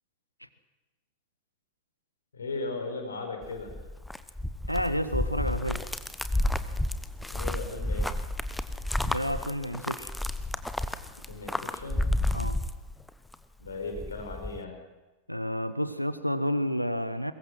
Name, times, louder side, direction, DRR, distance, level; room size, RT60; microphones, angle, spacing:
voice 1, 2.3-3.8 7.3-8.1 11.3-12.0 13.6-14.8, left 3 dB, 70° left, 4 dB, 4.7 m, -37 dB
sound 1, 3.4-13.4 13.7-14.6, left 1 dB, 5° left, 1.0 m, -31 dB
voice 2, 4.7-5.8 9.0-10.1 12.3-12.6 15.3-17.3, equal, 90° left, 13 dB, 0.9 m, -30 dB
22.5 x 21.0 x 6.1 m, 1.2 s
figure-of-eight pair, 90°, 0 cm